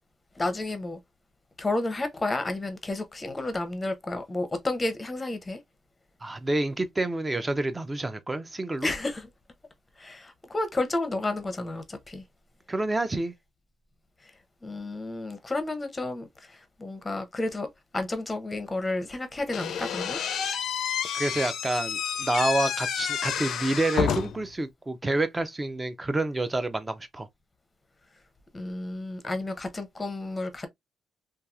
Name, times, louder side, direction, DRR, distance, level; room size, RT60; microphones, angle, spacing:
voice 1, 0.4-1.0 1.6-5.6 8.8-9.3 10.0-12.2 14.2-14.3 14.6-20.2 28.5-30.7, left 2 dB, 20° left, 0.7 m, -31 dB
voice 2, 6.2-8.9 12.7-13.3 21.1-27.3, right 2 dB, 20° right, 0.5 m, -28 dB
Slam / Squeak, 19.5-24.5, left 8 dB, 70° left, 0.4 m, -30 dB
2.8 x 2.3 x 2.3 m
cardioid pair, 90°, 0 cm